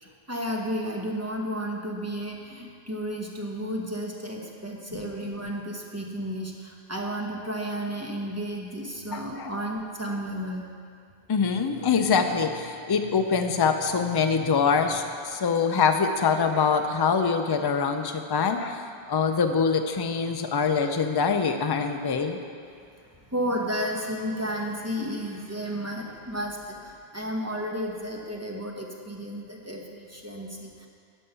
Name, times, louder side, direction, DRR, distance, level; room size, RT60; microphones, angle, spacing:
voice 1, 0.0-10.6 23.0-30.9, equal, 15° right, -1 dB, 0.9 m, -32 dB
voice 2, 9.1-9.5 11.3-22.4, left 5 dB, 35° left, 6 dB, 0.4 m, -24 dB
10.0 x 5.4 x 6.8 m, 2.4 s
omnidirectional pair, 1.0 m